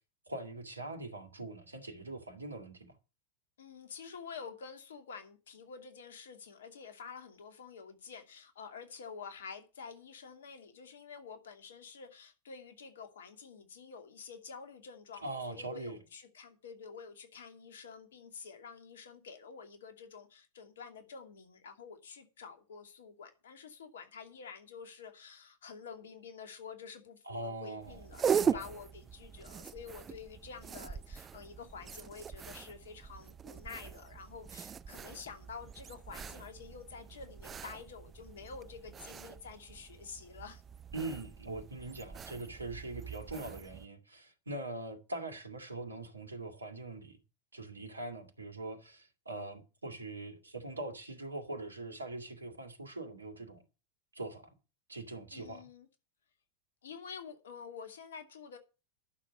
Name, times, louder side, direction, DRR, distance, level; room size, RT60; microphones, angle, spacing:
voice 1, 0.3-2.9 15.2-16.0 27.3-28.1 28.4-28.7 40.9-47.2 47.5-53.6 54.1-54.5 54.9-55.6, right 2 dB, 80° right, 2.2 m, -42 dB
voice 2, 3.6-40.6 55.3-55.9 56.8-58.6, left 5 dB, 65° left, 2.6 m, -49 dB
sound 1, 27.8-43.9, right 7 dB, 20° right, 0.6 m, -40 dB
11.5 x 7.0 x 8.2 m
figure-of-eight pair, 90°, 0 cm